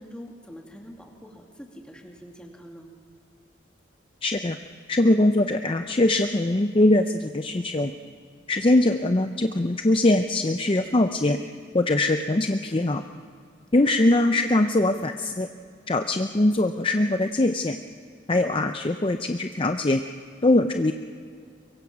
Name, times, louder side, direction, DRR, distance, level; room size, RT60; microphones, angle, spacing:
voice 1, 0.0-2.9 13.8-14.2, equal, 5° left, 1 dB, 2.4 m, -44 dB
voice 2, 4.2-4.6 4.9-7.9 8.5-11.4 11.7-13.0 13.7-15.5 15.9-17.8 18.3-20.0 20.4-20.9, left 2 dB, 25° left, 7 dB, 0.6 m, -22 dB
23.5 x 23.0 x 6.0 m, 2.3 s
head